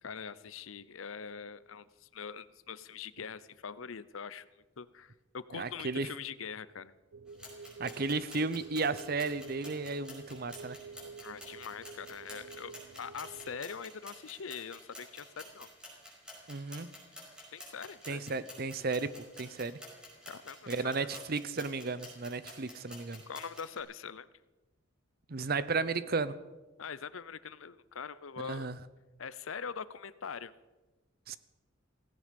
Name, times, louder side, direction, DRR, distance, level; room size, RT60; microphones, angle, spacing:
voice 1, 0.0-4.4 4.8-6.9 11.2-15.7 17.5-18.2 20.3-21.2 23.3-24.3 26.8-28.7 29.2-30.5, left 6 dB, 90° left, 17 dB, 0.7 m, -43 dB
voice 2, 5.5-6.1 7.8-10.8 16.5-16.9 18.1-19.8 20.7-23.2 25.3-26.4 28.4-28.8 31.3-31.4, right 3 dB, 50° right, 16 dB, 0.7 m, -34 dB
sound 1, 7.1-13.6, right 5 dB, 85° right, 0.6 m, -50 dB
sound 2, 7.3-23.8, left 1 dB, 5° right, 5.2 m, -51 dB
16.5 x 16.5 x 5.3 m, 1.2 s
head